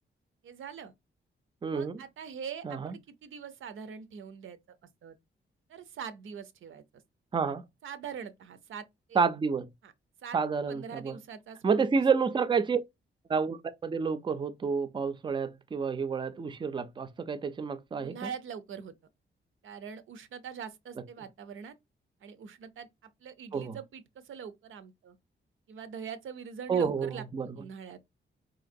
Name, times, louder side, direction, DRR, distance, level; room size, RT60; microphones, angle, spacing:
voice 1, 0.4-0.9 1.7-4.6 5.0-5.2 5.7-7.0 7.8-9.3 9.8-9.9 10.2-10.4 10.7-12.0 18.0-18.9 19.6-21.7 22.2-25.2 25.7-27.2 27.6-28.0, right 7 dB, 90° right, 0.6 m, -43 dB
voice 2, 1.6-2.0 2.6-2.9 7.3-7.6 9.1-9.7 10.3-11.1 11.6-12.8 13.3-18.3 23.5-23.8 26.7-27.6, right 5 dB, 25° right, 0.4 m, -29 dB
3.8 x 2.9 x 2.5 m
wide cardioid pair, 140°, 20 cm